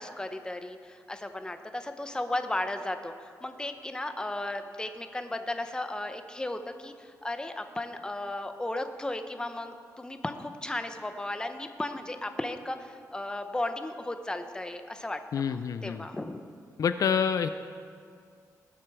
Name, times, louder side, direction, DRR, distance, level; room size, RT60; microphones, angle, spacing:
voice 1, 0.0-3.1 3.4-15.6 15.8-16.4, left 1 dB, 10° left, 8 dB, 0.8 m, -35 dB
voice 2, 15.3-16.1 16.8-17.5, left 7 dB, 65° left, 10 dB, 0.5 m, -27 dB
19.5 x 7.8 x 4.8 m, 2.2 s
wide cardioid pair, 125°, 6 cm